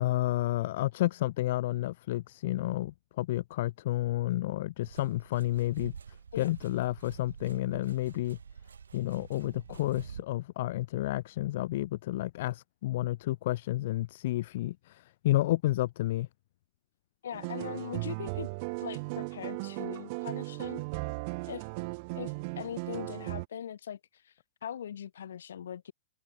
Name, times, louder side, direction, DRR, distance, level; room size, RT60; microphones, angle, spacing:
voice 1, 0.0-5.9 6.4-8.4 8.9-16.3, left 16 dB, 60° left, 1.2 m, -30 dB
sound 1, 4.8-10.2, right 6 dB, 90° right, 2.3 m, -47 dB
voice 2, 17.2-18.5 18.8-20.8 21.5-21.7 22.1-24.3 24.6-25.9, left 9 dB, 75° left, 7.2 m, -41 dB
sound 2, 17.3-23.4, right 29 dB, 50° right, 1.4 m, -37 dB
hypercardioid pair, 120°, 0 cm